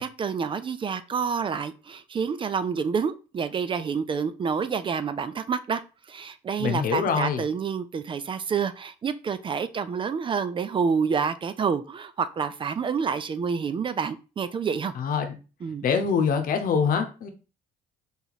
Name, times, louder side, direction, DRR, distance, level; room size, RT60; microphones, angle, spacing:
voice 1, 0.0-5.8 6.1-14.9 15.6-15.9, right 6 dB, 30° right, 0.4 m, -28 dB
voice 2, 6.6-7.4 15.0-15.3 15.8-17.3, left 6 dB, 55° left, 0.9 m, -24 dB
4.0 x 2.9 x 4.0 m
cardioid pair, 110°, 17 cm